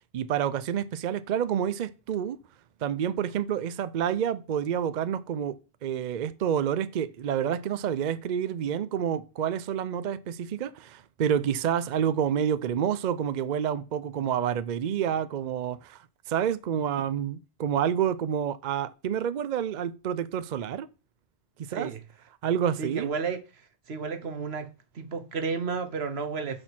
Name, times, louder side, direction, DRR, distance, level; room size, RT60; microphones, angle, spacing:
voice 1, 0.1-2.4 2.8-16.0 16.3-20.9 21.7-21.9 22.4-23.1, right 9 dB, 55° right, 0.6 m, -28 dB
voice 2, 21.7-22.0 22.8-26.6, right 5 dB, 80° right, 1.3 m, -33 dB
6.3 x 6.2 x 5.9 m
omnidirectional pair, 1.0 m